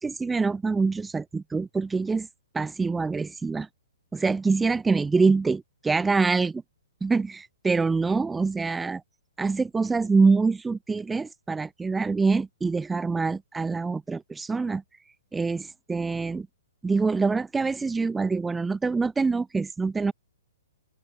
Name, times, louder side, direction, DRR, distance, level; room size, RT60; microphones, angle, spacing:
voice 1, 0.0-2.3 2.5-3.7 4.1-6.6 7.0-9.0 9.4-14.8 15.3-16.5 16.8-20.1, right 4 dB, 10° right, 1.1 m, -25 dB
figure-of-eight pair, 120°, 0 cm